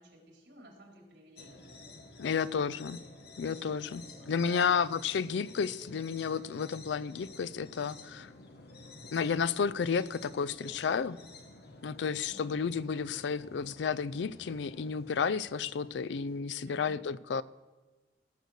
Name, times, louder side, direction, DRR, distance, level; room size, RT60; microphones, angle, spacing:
voice 1, 0.0-1.8 3.9-5.1 12.2-12.5 16.6-17.0, right 1 dB, 80° right, 0 dB, 3.6 m, -54 dB
sound 1, 1.4-16.4, left 2 dB, 65° left, 1.3 m, -52 dB
voice 2, 2.2-3.0 3.4-8.3 9.1-11.2 11.8-17.4, left 6 dB, 85° left, 17 dB, 0.4 m, -32 dB
17.5 x 6.8 x 6.4 m, 1.3 s
head